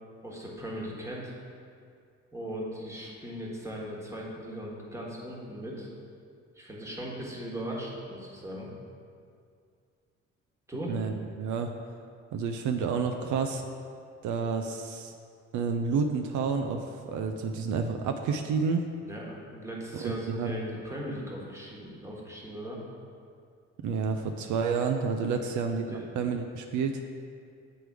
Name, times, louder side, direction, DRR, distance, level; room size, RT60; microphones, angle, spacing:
voice 1, 0.2-1.3 2.3-5.9 6.5-8.7 10.7-11.0 19.1-22.8 25.4-25.6 25.9-26.1, right 1 dB, 10° right, -3 dB, 1.3 m, -38 dB
voice 2, 10.9-11.7 12.3-13.7 14.2-15.1 15.5-18.9 20.0-20.6 23.8-27.0, right 5 dB, 75° right, 5 dB, 0.5 m, -30 dB
7.9 x 3.3 x 4.7 m, 2.3 s
cardioid pair, 90°, 30 cm